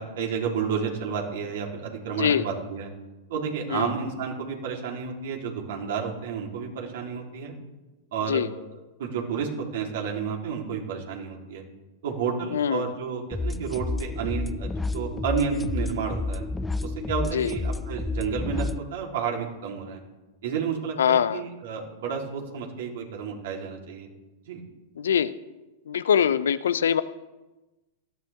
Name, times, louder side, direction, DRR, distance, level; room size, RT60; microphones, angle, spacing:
voice 1, 0.0-2.9 3.3-7.5 8.1-8.4 9.0-11.6 12.0-16.5 16.8-20.0 20.4-24.1 24.5-24.6, right 6 dB, 65° right, 0 dB, 3.6 m, -31 dB
voice 2, 12.5-12.8 17.3-17.5 21.0-21.4 25.0-25.3 25.9-27.0, left 8 dB, 80° left, 15 dB, 0.6 m, -23 dB
sound 1, 13.3-18.8, left 2 dB, 10° left, 0.5 m, -30 dB
19.0 x 14.0 x 3.6 m, 1.1 s
hypercardioid pair, 105°, 0 cm